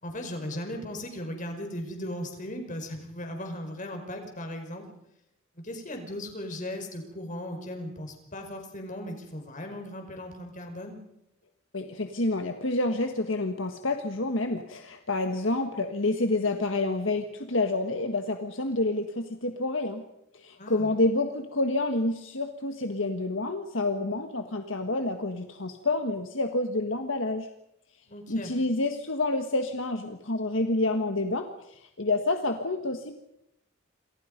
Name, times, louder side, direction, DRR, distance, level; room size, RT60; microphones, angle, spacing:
voice 1, 0.0-4.9 5.6-11.0 20.6-20.9 28.1-28.6, left 1 dB, 40° left, 4 dB, 5.2 m, -37 dB
voice 2, 11.7-20.0 20.3-27.5 28.3-33.2, left 2 dB, 65° left, 5 dB, 1.7 m, -28 dB
28.5 x 27.0 x 5.4 m, 0.83 s
head